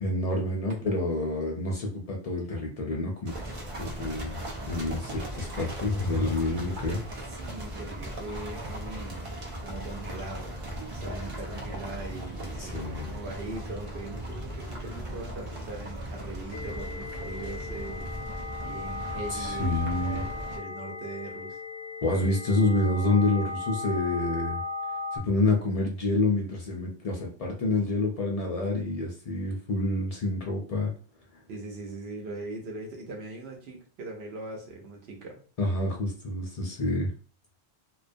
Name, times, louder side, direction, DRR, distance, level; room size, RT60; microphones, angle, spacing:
voice 1, 0.0-3.3 3.8-4.4 4.7-7.0 12.6-13.1 19.3-20.3 22.0-24.6 25.1-30.9 35.6-37.1, left 2 dB, 60° left, 0 dB, 0.3 m, -28 dB
sound 1, 3.3-20.6, right 1 dB, 50° right, 0.3 m, -38 dB
voice 2, 7.3-18.1 18.6-21.6 31.5-35.4, right 2 dB, 70° right, 1 dB, 0.9 m, -40 dB
sound 2, 16.5-25.2, left 3 dB, 90° left, 0.9 m, -37 dB
2.3 x 2.2 x 2.5 m, 0.39 s
omnidirectional pair, 1.2 m